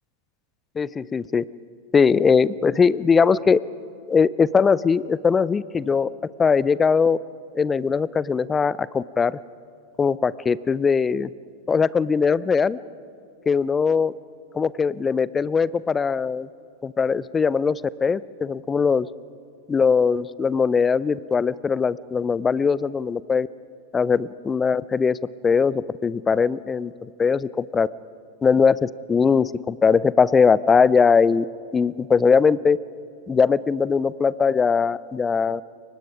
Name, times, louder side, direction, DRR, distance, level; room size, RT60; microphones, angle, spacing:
voice 1, 0.8-1.4 1.9-3.6 4.1-6.1 6.4-7.2 7.5-9.4 10.0-11.3 11.7-12.8 13.5-14.1 14.5-16.5 16.8-19.1 19.7-23.5 23.9-25.2 25.4-27.9 28.4-31.5 31.7-32.8 33.3-35.6, left 5 dB, 15° left, 21 dB, 0.5 m, -20 dB
29.0 x 24.0 x 5.1 m, 2.4 s
figure-of-eight pair, 90°, 0 cm